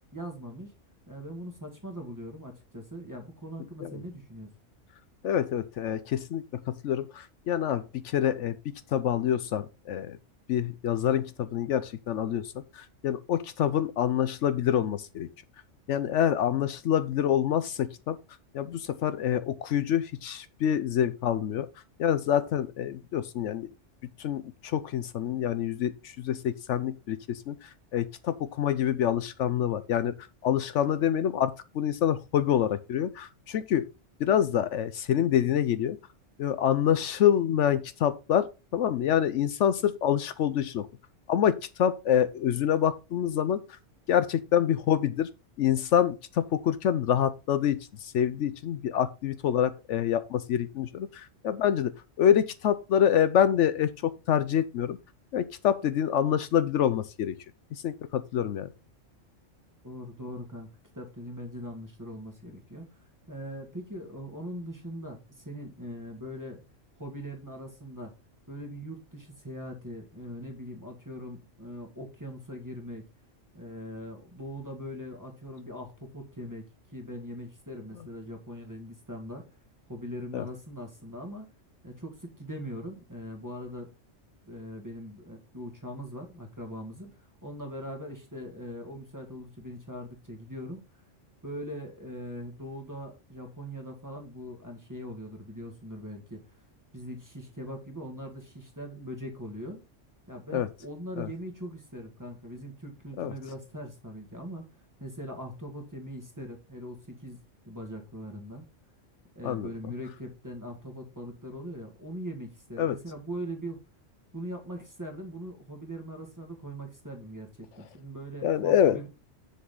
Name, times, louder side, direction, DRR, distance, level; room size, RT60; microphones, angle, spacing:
voice 1, 0.1-0.7 1.1-4.5 59.8-60.7 60.9-62.9 63.3-66.6 67.0-68.1 68.5-73.1 73.5-79.4 79.9-81.5 81.8-83.9 84.5-90.8 91.4-96.4 96.9-99.8 100.3-104.7 105.0-108.6 109.4-113.8 114.3-119.1, equal, 15° right, 1.9 m, -41 dB
voice 2, 5.2-10.2 10.5-15.3 15.9-18.2 18.5-21.7 22.0-23.7 24.2-30.2 30.4-33.9 34.2-36.0 36.4-40.9 41.3-43.6 44.1-45.3 45.6-51.9 52.2-55.0 55.3-57.4 57.7-58.7 80.3-80.5 100.5-100.7 101.2-101.3 103.2-103.3 109.4-109.7 112.8-113.0 118.4-119.0, left 9 dB, 75° left, 0.9 m, -26 dB
7.5 x 6.6 x 3.8 m
omnidirectional pair, 1.3 m